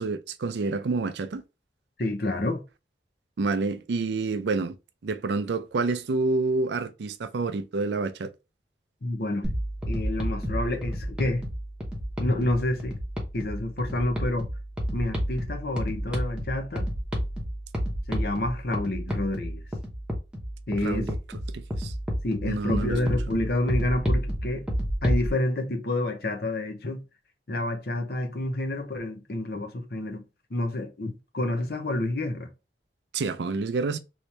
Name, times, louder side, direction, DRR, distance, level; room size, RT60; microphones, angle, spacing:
voice 1, 0.0-1.4 3.4-4.7 5.0-8.3 20.8-21.2 21.5-21.9 22.5-23.0 33.1-34.0, right 3 dB, 75° right, 0.4 m, -28 dB
voice 2, 2.0-2.6 9.0-9.5 9.9-11.4 12.2-13.0 13.3-14.5 14.9-16.8 18.1-19.6 20.7-21.1 22.2-24.6 25.0-27.0 27.5-32.5, left 1 dB, 55° left, 0.7 m, -29 dB
sound 1, 9.4-25.3, equal, 5° right, 0.8 m, -31 dB
3.1 x 2.8 x 3.1 m
head